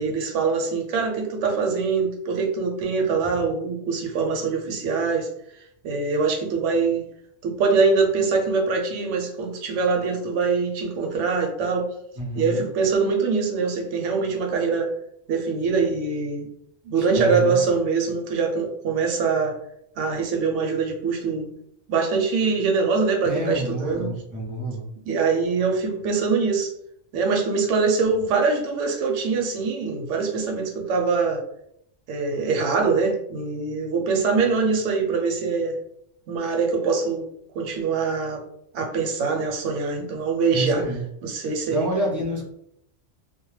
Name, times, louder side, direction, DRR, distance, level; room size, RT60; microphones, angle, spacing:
voice 1, 0.0-5.3 5.8-7.0 7.4-11.9 12.4-14.9 15.3-16.5 16.8-19.5 20.0-21.5 21.9-24.1 25.1-26.7 27.1-31.4 32.1-35.8 36.3-37.3 37.5-38.4 38.7-40.8 41.2-41.9, right 4 dB, 80° right, 2 dB, 0.9 m, -23 dB
voice 2, 12.2-12.7 16.9-17.6 23.2-24.9 40.5-41.0 41.7-42.5, equal, 30° right, -4 dB, 0.4 m, -28 dB
2.2 x 2.1 x 3.0 m, 0.73 s
omnidirectional pair, 1.2 m